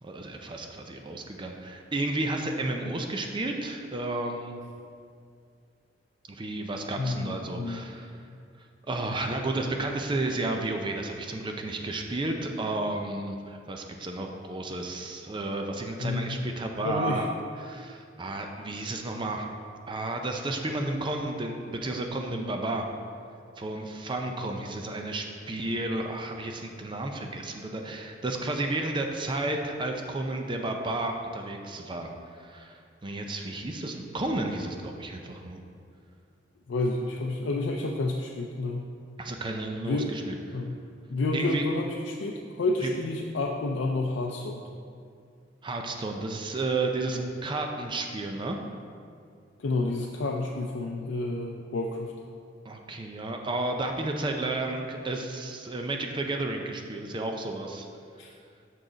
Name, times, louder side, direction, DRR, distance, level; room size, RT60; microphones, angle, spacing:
voice 1, 0.0-4.6 6.3-8.1 8.9-17.3 17.6-19.5 19.9-22.9 23.6-32.1 32.4-35.6 39.2-40.3 41.3-41.6 42.8-42.9 45.6-48.6 52.6-57.9, right 2 dB, 25° right, 3 dB, 0.5 m, -32 dB
voice 2, 7.0-7.8 16.0-16.5 16.8-17.2 36.7-38.8 39.8-40.1 40.5-40.8 41.1-44.6 49.6-52.1 58.2-58.3, left 2 dB, 85° left, 0 dB, 0.5 m, -30 dB
6.4 x 6.2 x 3.9 m, 2.3 s
head